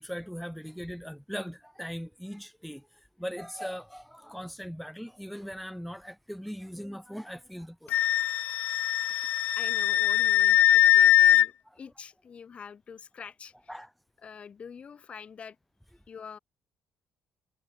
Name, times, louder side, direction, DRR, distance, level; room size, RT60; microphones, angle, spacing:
voice 1, 0.0-8.0 11.7-11.8 13.7-13.9, equal, ahead, 1.7 m, -40 dB
Wind instrument woodwind instrument, 7.9-11.5, left 12 dB, 70° left, 0.3 m, -21 dB
voice 2, 9.6-13.7 14.2-15.6 16.1-16.4, left 6 dB, 45° left, 6.9 m, -46 dB
cardioid pair, 90°, 3 cm